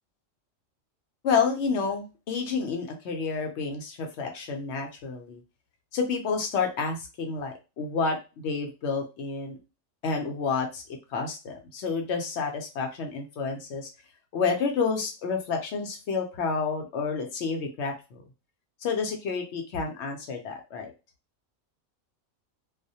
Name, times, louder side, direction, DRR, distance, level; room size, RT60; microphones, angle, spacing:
voice 1, 1.2-5.4 5.9-8.2 8.4-9.6 10.0-10.8 11.1-13.9 14.3-18.2 18.8-20.9, left 5 dB, 65° left, 3 dB, 0.8 m, -29 dB
2.3 x 2.1 x 2.6 m, 0.29 s
omnidirectional pair, 1.3 m